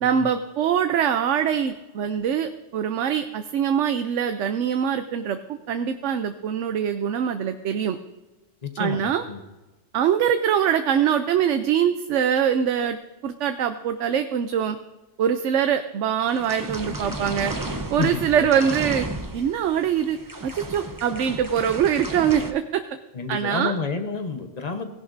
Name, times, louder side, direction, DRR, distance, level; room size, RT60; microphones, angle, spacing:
voice 1, 0.0-8.0 8.8-9.2 9.9-13.0 13.2-14.8 15.2-17.5 17.9-19.1 19.3-20.2 20.4-22.8 23.3-23.7, right 8 dB, 80° right, 8 dB, 1.0 m, -23 dB
voice 2, 8.6-9.4 18.0-18.6 23.1-24.9, left 4 dB, 35° left, 6 dB, 1.1 m, -30 dB
sound 1, 16.3-22.5, right 2 dB, 20° right, 0.7 m, -33 dB
17.5 x 11.0 x 2.7 m, 1.1 s
omnidirectional pair, 1.2 m